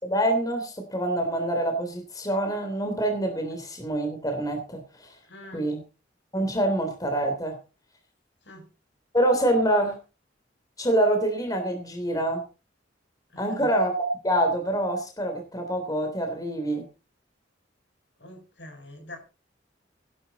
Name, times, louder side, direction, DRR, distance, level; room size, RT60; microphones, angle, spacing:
voice 1, 0.0-5.1 5.5-5.8 6.3-7.5 9.1-10.0 10.8-12.4 13.4-16.8, right 1 dB, 20° left, 4 dB, 3.3 m, -26 dB
voice 2, 5.2-5.8 8.4-8.7 13.3-13.7 18.2-19.2, left 1 dB, 70° left, 5 dB, 7.4 m, -45 dB
16.5 x 12.0 x 4.2 m, 0.33 s
head